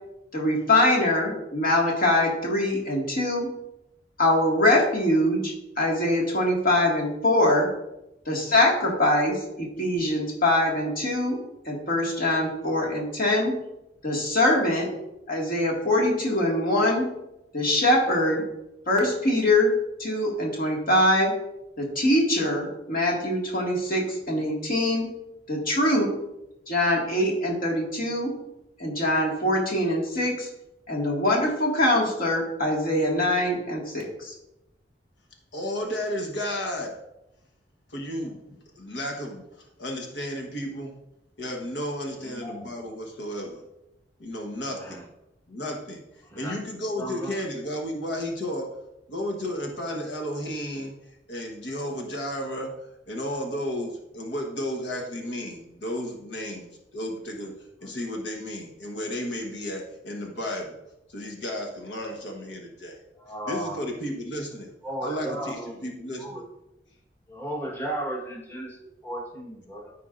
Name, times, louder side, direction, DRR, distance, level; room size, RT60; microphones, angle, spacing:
voice 1, 0.3-3.5 4.2-7.7 8.3-11.4 11.7-13.5 14.0-14.9 15.3-17.1 17.5-18.4 18.9-19.7 20.0-21.3 21.8-25.1 25.5-26.1 26.7-28.3 28.8-30.5 30.9-34.3, left 1 dB, 55° left, -1 dB, 1.9 m, -23 dB
voice 2, 35.5-36.9 37.9-40.9 41.4-43.6 44.2-45.0 45.5-46.0 46.3-48.7 49.1-50.9 51.3-57.5 57.8-60.8 61.1-63.0 63.5-64.7 65.0-66.4, equal, 85° left, 2 dB, 1.2 m, -33 dB
voice 3, 42.2-42.7 44.6-45.0 46.3-46.5 47.0-47.3 63.2-63.8 64.8-65.8 66.2-66.4 67.3-69.9, right 1 dB, 15° left, -2 dB, 1.3 m, -35 dB
13.5 x 4.6 x 2.5 m, 0.89 s
head